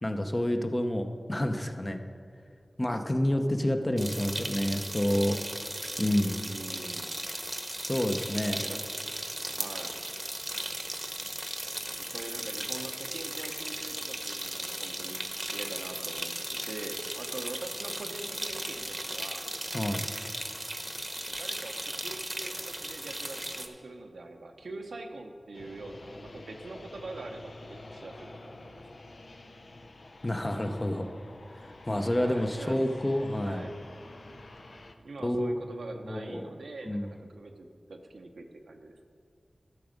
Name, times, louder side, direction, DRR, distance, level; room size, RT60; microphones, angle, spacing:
voice 1, 0.0-2.0 2.8-5.4 6.0-6.4 7.9-8.6 19.7-20.0 30.2-31.1 31.9-33.6 35.2-35.6 36.0-36.5 36.8-37.1, left 1 dB, 30° left, 5 dB, 0.8 m, -28 dB
sound 1, 4.0-23.7, right 1 dB, 20° right, 1.0 m, -36 dB
voice 2, 6.5-7.1 8.6-8.8 9.5-9.9 12.0-15.2 15.5-19.5 21.2-28.8 32.1-32.8 33.4-33.8 35.0-39.0, right 2 dB, 90° right, 4 dB, 0.8 m, -43 dB
sound 2, 25.5-34.9, left 2 dB, 65° left, 0.7 m, -48 dB
12.5 x 6.1 x 5.2 m, 2.3 s
cardioid pair, 45°, 0 cm